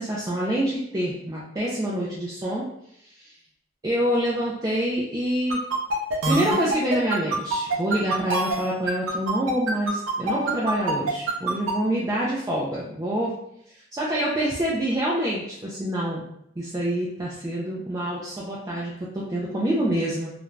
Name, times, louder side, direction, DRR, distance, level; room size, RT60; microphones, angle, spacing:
voice 1, 0.0-2.7 3.0-3.3 3.8-5.6 6.2-13.4 13.9-16.3 16.6-20.3, right 1 dB, 15° right, -6 dB, 0.3 m, -26 dB
sound 1, 5.5-11.7, right 3 dB, 70° right, 0.5 m, -25 dB
2.4 x 2.2 x 3.1 m, 0.74 s
head